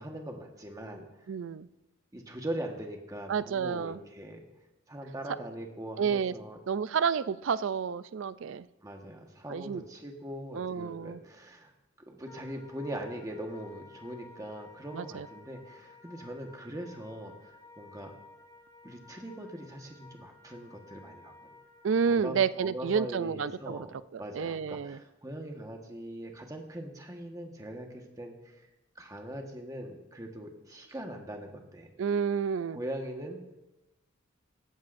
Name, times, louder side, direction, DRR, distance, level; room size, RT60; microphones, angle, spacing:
voice 1, 0.0-1.3 2.1-4.4 4.9-6.6 8.8-11.7 12.0-18.1 18.8-21.5 22.1-23.9 24.2-28.7 28.9-31.9 32.7-33.4, right 1 dB, 15° right, 2 dB, 1.3 m, -41 dB
voice 2, 1.3-1.7 3.3-4.0 6.0-6.3 6.7-8.7 9.5-9.8 10.5-11.2 14.9-15.3 21.8-23.9 24.1-25.0 32.0-32.8, right 6 dB, 65° right, 16 dB, 0.4 m, -30 dB
Wind instrument woodwind instrument, 12.2-22.1, left 3 dB, 15° left, 2.8 m, -54 dB
18.0 x 14.5 x 2.6 m, 1.0 s
head